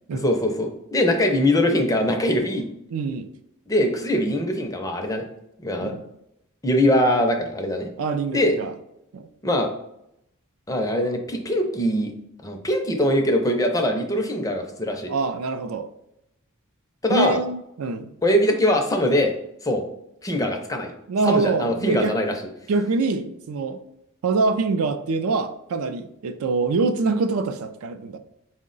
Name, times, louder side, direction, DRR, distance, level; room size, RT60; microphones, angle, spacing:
voice 1, 0.1-2.6 3.7-5.2 5.6-5.9 6.6-7.9 8.3-8.5 9.4-9.7 10.7-12.1 12.4-15.1 17.0-17.4 18.2-19.3 19.6-19.8 20.2-20.9 21.3-22.3, left 1 dB, 15° left, 4 dB, 0.5 m, -22 dB
voice 2, 2.9-3.3 5.8-6.0 8.0-8.7 9.1-9.3 15.1-15.9 17.1-18.1 21.1-22.1 22.7-23.8 24.2-28.2, right 3 dB, 75° right, 9 dB, 0.4 m, -24 dB
4.5 x 2.1 x 3.8 m, 0.81 s
head